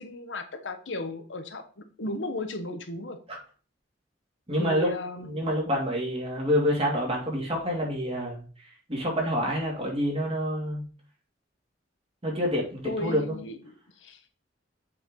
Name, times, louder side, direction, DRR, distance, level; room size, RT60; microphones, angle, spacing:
voice 1, 0.0-3.2 4.6-5.4 12.8-14.2, left 2 dB, 85° left, 7 dB, 1.1 m, -36 dB
voice 2, 4.5-4.9 5.2-8.4 8.9-10.8 12.2-13.4, equal, 35° right, -1 dB, 2.5 m, -27 dB
7.6 x 4.5 x 3.8 m, 0.39 s
head